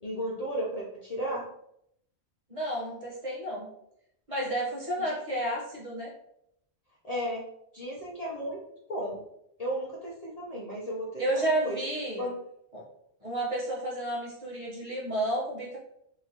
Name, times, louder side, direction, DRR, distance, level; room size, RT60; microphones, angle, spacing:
voice 1, 0.0-1.4 7.0-7.4 7.7-8.6 8.9-9.2 9.6-11.8 12.2-12.3, equal, 40° left, -4 dB, 0.7 m, -34 dB
voice 2, 2.5-3.7 4.3-6.1 11.2-12.3 12.7-12.8 13.2-15.8, right 1 dB, 30° right, -5 dB, 1.1 m, -31 dB
3.6 x 3.0 x 2.9 m, 0.75 s
omnidirectional pair, 1.1 m